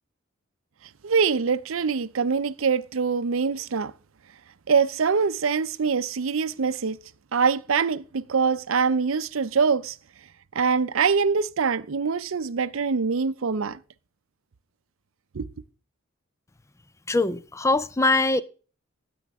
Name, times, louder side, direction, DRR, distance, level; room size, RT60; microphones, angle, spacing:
voice 1, 1.0-3.9 4.7-7.0 7.3-10.0 10.5-13.8 15.3-15.5, right 5 dB, 70° right, 0.6 m, -24 dB
voice 2, 17.1-18.4, left 2 dB, 15° left, 0.4 m, -22 dB
13.5 x 8.4 x 3.5 m
head